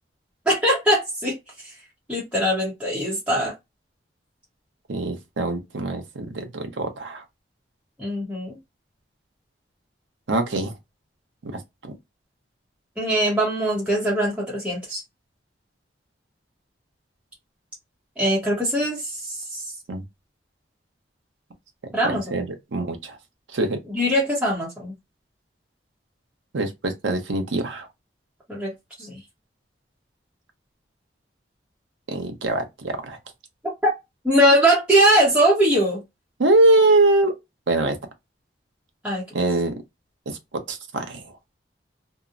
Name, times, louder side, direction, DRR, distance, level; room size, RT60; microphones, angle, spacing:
voice 1, 0.5-1.3 1.6-1.7 2.1-3.5 8.0-8.6 13.0-15.0 18.2-19.6 21.9-22.4 23.9-24.9 28.5-28.7 29.0-29.2 33.8-33.9 34.2-36.0 39.0-39.2, right 1 dB, 5° right, 0.8 m, -21 dB
voice 2, 4.9-7.2 10.3-10.7 11.4-11.9 19.9-20.0 22.0-22.5 22.7-23.2 23.5-23.8 26.5-27.9 32.1-33.2 36.4-37.3 37.7-38.0 39.3-39.7 40.3-40.4 40.7-41.2, right 2 dB, 90° right, 0.7 m, -23 dB
2.7 x 2.0 x 2.4 m
head